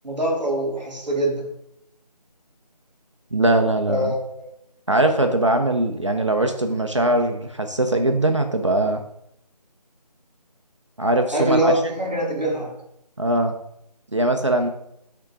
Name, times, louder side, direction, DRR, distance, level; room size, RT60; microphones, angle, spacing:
voice 1, 0.0-1.4 3.9-4.5 11.3-12.7, right 1 dB, ahead, -17 dB, 0.9 m, -23 dB
voice 2, 3.3-4.1 4.9-9.0 11.0-11.7 13.2-13.5 14.1-14.7, right 1 dB, 45° right, 5 dB, 0.5 m, -21 dB
9.3 x 3.8 x 3.6 m, 0.78 s
figure-of-eight pair, 165°, 21 cm